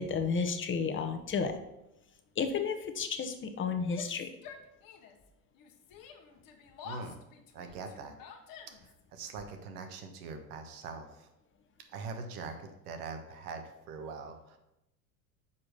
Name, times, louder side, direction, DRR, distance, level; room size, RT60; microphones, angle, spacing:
voice 1, 0.0-1.5 2.4-4.3, left 5 dB, 25° left, 7 dB, 1.0 m, -32 dB
Yell, 3.8-5.3 5.5-9.0, left 6 dB, 45° left, 1.2 m, -49 dB
voice 2, 6.8-7.2 7.5-8.2 8.8-11.3 11.9-14.6, right 4 dB, 75° right, 6 dB, 1.4 m, -43 dB
5.9 x 4.8 x 6.4 m, 0.88 s
hypercardioid pair, 90°, 45 cm